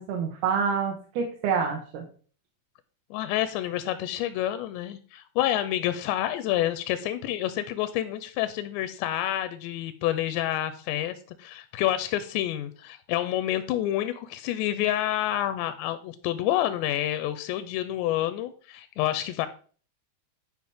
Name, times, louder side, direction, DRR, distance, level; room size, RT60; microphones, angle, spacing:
voice 1, 0.0-2.1, right 6 dB, 70° right, 1 dB, 2.8 m, -27 dB
voice 2, 3.1-19.5, left 13 dB, 85° left, 11 dB, 2.8 m, -28 dB
11.0 x 4.8 x 3.5 m, 0.41 s
omnidirectional pair, 4.9 m